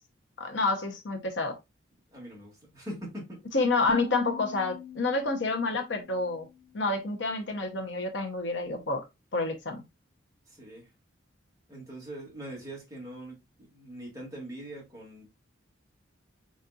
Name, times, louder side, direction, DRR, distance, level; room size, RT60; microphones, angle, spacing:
voice 1, 0.4-1.5 3.5-6.4 6.7-9.0 9.3-9.8, left 3 dB, 65° left, 0.9 m, -28 dB
voice 2, 2.1-3.4 10.5-10.9 11.7-15.2, right 1 dB, 15° right, 2.1 m, -42 dB
sound 1, 3.9-6.9, left 3 dB, 45° right, 0.8 m, -43 dB
5.0 x 4.1 x 2.5 m
head